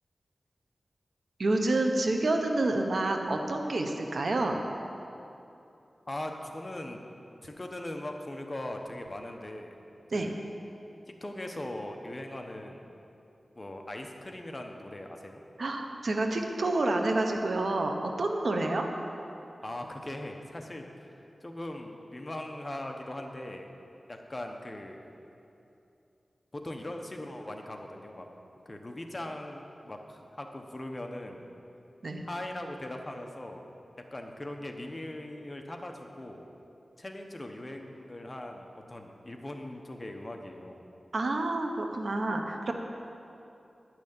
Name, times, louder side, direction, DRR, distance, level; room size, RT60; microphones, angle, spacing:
voice 1, 1.4-4.6 10.1-10.3 15.6-18.9 32.0-32.2 41.1-42.7, right 2 dB, 70° right, 3 dB, 1.0 m, -28 dB
voice 2, 6.1-7.0 7.4-9.7 10.1-10.4 11.1-12.8 13.5-15.4 19.6-21.2 21.4-23.7 24.1-25.1 26.5-28.3 28.6-31.6 32.3-33.6 34.1-36.5 37.0-40.8, left 1 dB, 30° left, 3 dB, 1.1 m, -40 dB
10.5 x 6.2 x 8.8 m, 2.8 s
wide cardioid pair, 70°, 0 cm